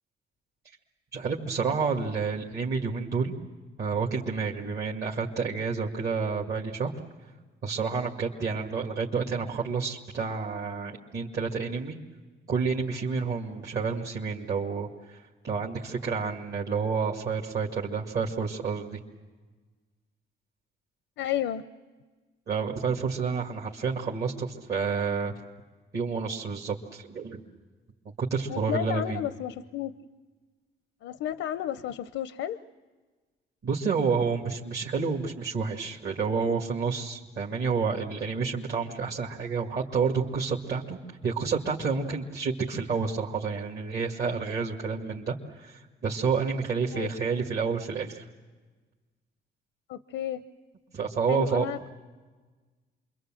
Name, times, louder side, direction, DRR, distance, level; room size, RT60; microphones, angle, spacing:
voice 1, 1.1-3.3 3.8-6.9 7.6-12.0 12.5-19.0 22.5-25.3 25.9-27.4 28.2-29.2 33.6-48.2 50.9-51.7, right 5 dB, 55° right, -2 dB, 2.2 m, -29 dB
voice 2, 21.2-21.6 28.5-29.9 31.0-32.6 46.9-47.1 49.9-50.4 51.3-51.9, left 11 dB, 85° left, 12 dB, 0.7 m, -32 dB
27.5 x 23.0 x 7.6 m, 1.4 s
cardioid pair, 90°, 20 cm